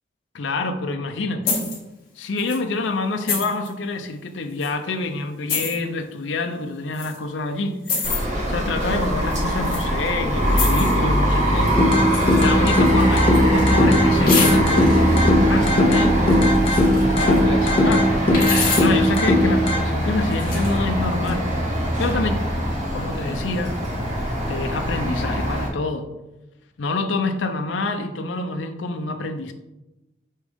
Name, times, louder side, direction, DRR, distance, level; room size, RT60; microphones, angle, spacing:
voice 1, 0.3-1.6 2.2-11.9 12.4-16.4 17.2-18.1 18.8-21.4 22.0-22.4 22.9-23.7 24.5-26.1 26.8-29.5, left 3 dB, 80° left, 6 dB, 0.6 m, -27 dB
sound 1, 1.5-1.8 2.4-2.6 3.3-3.7 4.6-4.7 5.5-5.7 6.9-7.2 7.9-8.2 9.3-9.8 10.5-11.0 12.1-12.5 12.7-13.6 14.3-15.0 16.3-17.4 18.3-19.0 20.2-20.7, left 4 dB, 50° left, 2.1 m, -27 dB
sound 2, 8.0-25.7, equal, 40° right, 1.6 m, -22 dB
sound 3, 11.8-19.8, left 1 dB, 30° left, 1.1 m, -19 dB
8.6 x 3.6 x 3.6 m, 1.0 s
head